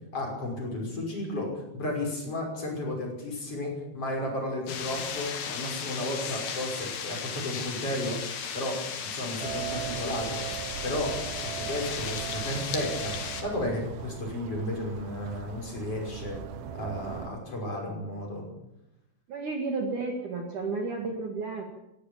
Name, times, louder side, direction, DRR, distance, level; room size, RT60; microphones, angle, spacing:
voice 1, 0.1-8.2 8.5-10.4 10.8-13.1 13.4-16.4 16.7-18.5, left 1 dB, 30° left, 0 dB, 6.6 m, -33 dB
sound 1, 4.7-13.4, left 7 dB, 60° left, 3.7 m, -35 dB
sound 2, 9.4-17.3, right 10 dB, 70° right, 2.0 m, -39 dB
voice 2, 19.3-21.6, right 3 dB, 50° right, 2 dB, 3.0 m, -32 dB
18.0 x 17.0 x 8.6 m, 0.92 s
omnidirectional pair, 5.2 m